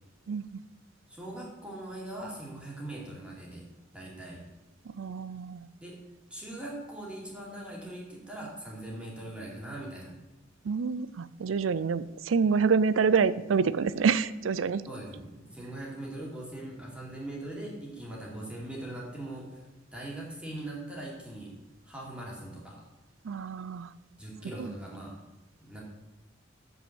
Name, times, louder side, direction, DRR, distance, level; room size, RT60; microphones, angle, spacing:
voice 1, 0.3-0.6 4.9-5.7 10.6-14.8 23.2-23.9 24.6-24.7, right 5 dB, 90° right, 17 dB, 0.4 m, -27 dB
voice 2, 1.1-3.6 3.9-4.4 5.8-5.9 6.3-10.1 14.9-19.6 19.9-21.5 21.8-22.8 24.2-25.1 25.6-25.8, right 1 dB, 5° right, -4 dB, 2.3 m, -41 dB
7.2 x 5.6 x 7.3 m, 1.0 s
head